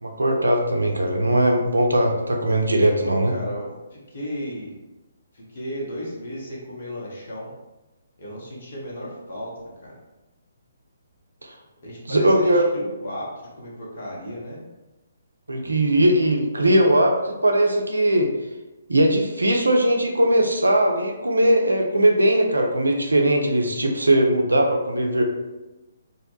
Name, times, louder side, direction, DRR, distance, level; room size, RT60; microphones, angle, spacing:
voice 1, 0.0-3.3 11.4-11.5 12.1-12.6 15.5-18.3 18.9-25.2, right 1 dB, 75° right, 2 dB, 0.4 m, -19 dB
voice 2, 3.0-4.8 5.3-7.5 8.2-9.9 11.8-14.7, equal, 50° left, -4 dB, 0.8 m, -34 dB
2.2 x 2.1 x 3.0 m, 1.0 s
figure-of-eight pair, 135°, 0 cm